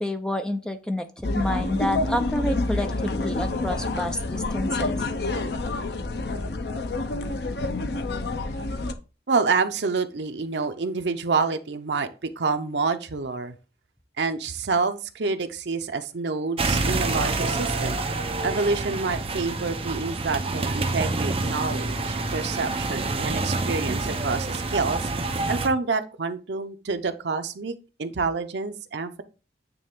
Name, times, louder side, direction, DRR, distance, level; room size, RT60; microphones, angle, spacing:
voice 1, 0.0-4.9, left 1 dB, 5° left, 6 dB, 0.6 m, -29 dB
sound 1, 1.2-8.9, left 2 dB, 65° left, 0.6 m, -28 dB
voice 2, 9.3-12.1 12.4-13.5 14.2-18.0 18.4-25.1 25.5-27.7 28.0-29.1, right 4 dB, 75° right, 8 dB, 0.7 m, -27 dB
sound 2, 16.6-25.7, right 3 dB, 30° right, 0.7 m, -27 dB
9.1 x 3.3 x 3.6 m, 0.33 s
head